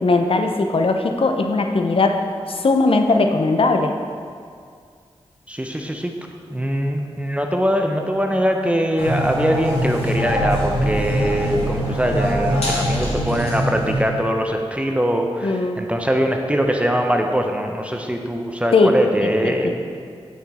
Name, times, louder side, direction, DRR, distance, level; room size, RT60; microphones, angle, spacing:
voice 1, 0.0-3.9 15.4-15.8 18.7-19.7, left 3 dB, 60° left, 5 dB, 0.7 m, -19 dB
voice 2, 5.5-6.1 6.5-20.0, equal, 10° right, 3 dB, 0.7 m, -22 dB
sound 1, 9.0-14.0, equal, 75° left, 2.1 m, -23 dB
9.2 x 6.0 x 4.3 m, 2.2 s
wide cardioid pair, 75°, 10 cm